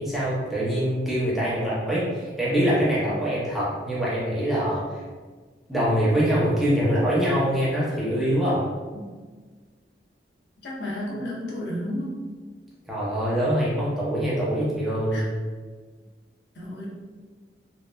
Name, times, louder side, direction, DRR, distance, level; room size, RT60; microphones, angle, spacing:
voice 1, 0.0-5.0 5.7-8.6 12.9-15.3, equal, ahead, -8 dB, 0.5 m, -24 dB
voice 2, 10.6-12.1 15.1-15.2 16.6-16.9, left 1 dB, 75° left, -5 dB, 0.7 m, -32 dB
2.9 x 2.1 x 2.2 m, 1.4 s
head